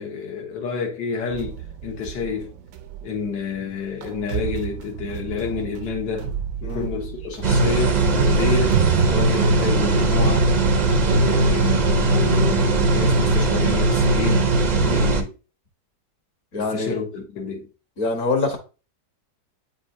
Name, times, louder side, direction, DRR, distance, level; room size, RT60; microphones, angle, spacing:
voice 1, 0.0-2.5 3.0-6.3 6.6-8.8 9.1-10.5 11.0-14.5 14.9-15.3 16.6-17.7, left 5 dB, 80° left, 1.9 m, -29 dB
sound 1, 1.3-12.6, right 8 dB, 70° right, 0.8 m, -31 dB
sound 2, 7.4-15.2, right 2 dB, 50° right, 0.4 m, -19 dB
voice 2, 16.5-16.9 18.0-18.6, left 3 dB, 50° left, 1.6 m, -25 dB
8.6 x 4.2 x 2.6 m
omnidirectional pair, 1.8 m